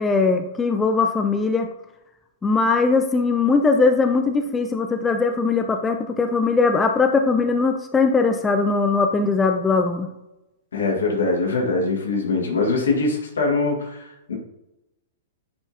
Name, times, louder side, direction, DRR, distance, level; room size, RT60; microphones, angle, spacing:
voice 1, 0.0-1.7 2.4-10.1, left 4 dB, 15° left, 5 dB, 0.5 m, -20 dB
voice 2, 10.7-14.3, left 3 dB, 70° left, 0 dB, 1.9 m, -23 dB
9.8 x 4.4 x 2.9 m, 0.95 s
figure-of-eight pair, 105°, 0 cm